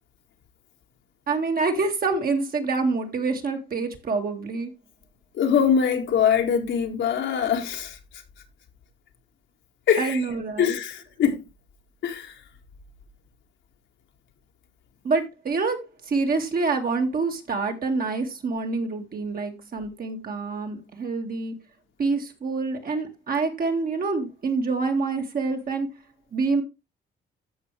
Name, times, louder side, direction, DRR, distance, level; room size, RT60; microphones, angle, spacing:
voice 1, 1.3-4.7 10.0-10.8 15.0-15.8 16.0-21.6 22.0-25.9 26.3-26.6, right 4 dB, 50° right, 2.3 m, -26 dB
voice 2, 5.3-8.0 9.9-10.2 10.6-11.4 12.0-12.4, left 8 dB, 75° left, 2.1 m, -23 dB
14.0 x 5.6 x 3.4 m
cardioid pair, 90°, 20 cm